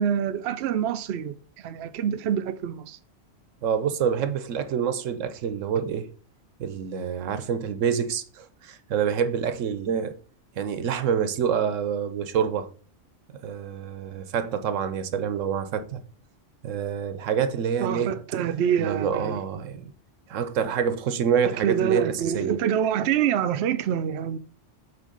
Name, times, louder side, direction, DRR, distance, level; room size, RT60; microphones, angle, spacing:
voice 1, 0.0-1.3 1.6-3.0 17.8-19.3 21.6-24.4, right 9 dB, 65° right, 0.8 m, -26 dB
voice 2, 3.6-6.1 6.6-10.1 10.6-12.7 13.3-16.0 16.6-18.2 18.8-19.9 20.3-22.5, right 7 dB, 80° right, 1.1 m, -27 dB
7.8 x 3.3 x 5.1 m
omnidirectional pair, 1.3 m